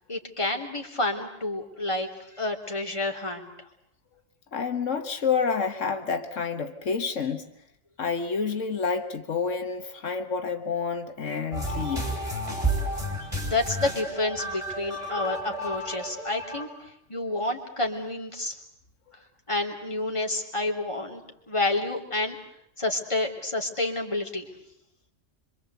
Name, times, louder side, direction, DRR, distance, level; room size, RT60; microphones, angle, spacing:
voice 1, 0.1-2.1 2.3-3.5 13.4-18.5 19.5-21.2 21.5-22.4 22.8-24.5, left 2 dB, 25° left, 1 dB, 3.4 m, -29 dB
voice 2, 4.5-7.5 8.0-12.1, left 5 dB, 85° left, 6 dB, 1.8 m, -29 dB
sound 1, 11.5-16.6, right 1 dB, 25° right, 6.9 m, -31 dB
26.0 x 25.0 x 8.1 m, 0.74 s
omnidirectional pair, 1.2 m